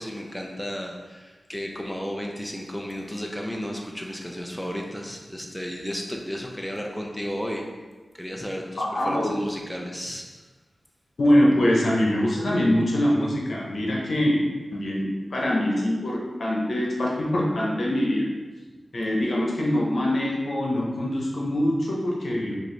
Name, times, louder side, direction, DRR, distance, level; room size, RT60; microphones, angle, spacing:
voice 1, 0.0-7.7 8.1-10.4, equal, 5° left, 0 dB, 0.5 m, -33 dB
voice 2, 8.8-9.4 11.2-14.4 14.7-18.3 18.9-22.5, left 1 dB, 70° left, -3 dB, 0.9 m, -23 dB
4.6 x 2.6 x 3.2 m, 1.3 s
wide cardioid pair, 70°, 0 cm